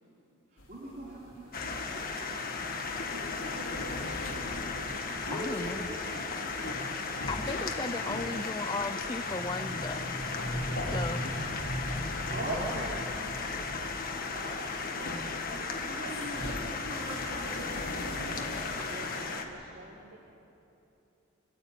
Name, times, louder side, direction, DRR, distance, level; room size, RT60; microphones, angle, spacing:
voice 1, 0.5-2.0 3.4-4.5 5.2-6.5 12.2-13.0 14.3-15.1 15.5-18.5, right 1 dB, 45° right, -6 dB, 4.0 m, -41 dB
sound 1, 0.6-19.2, equal, 75° left, 2.6 m, -40 dB
sound 2, 1.5-19.4, left 4 dB, 45° left, 1.7 m, -36 dB
voice 2, 5.3-5.9 7.1-10.2 10.9-11.3, left 3 dB, 20° left, 9 dB, 0.5 m, -36 dB
voice 3, 7.5-8.9 10.7-11.6 13.5-14.3 14.7-15.3 18.8-20.2, right 2 dB, 65° right, -1 dB, 2.1 m, -49 dB
26.0 x 14.0 x 9.2 m, 2.9 s
head